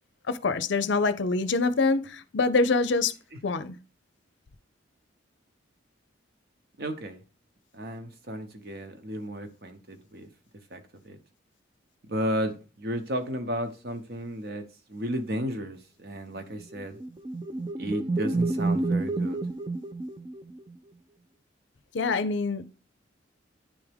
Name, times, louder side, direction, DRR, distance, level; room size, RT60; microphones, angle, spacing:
voice 1, 0.3-3.1 3.4-3.8 21.9-22.6, left 3 dB, 70° left, 0.5 m, -25 dB
voice 2, 6.8-7.2 7.7-10.3 10.7-11.2 12.1-17.0 17.8-19.4, equal, 55° right, 0.9 m, -33 dB
sound 1, 16.7-20.7, right 2 dB, 20° right, 0.4 m, -29 dB
10.0 x 3.5 x 3.5 m
head